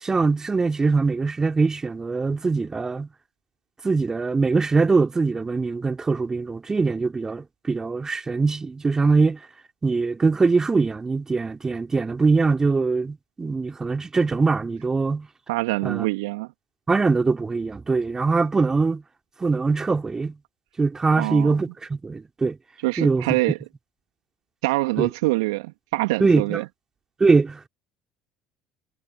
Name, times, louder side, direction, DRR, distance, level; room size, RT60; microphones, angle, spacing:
voice 1, 0.0-3.1 3.8-9.4 9.8-15.3 15.8-16.1 16.9-19.0 19.4-20.3 20.8-22.6 23.0-23.3 25.0-25.1 26.2-26.6 27.2-27.7, right 4 dB, 20° right, 4.3 m, -22 dB
voice 2, 15.5-16.5 21.2-21.5 22.8-23.6 24.6-26.6, right 23 dB, 65° right, 3.0 m, -24 dB
figure-of-eight pair, 60°, 3 cm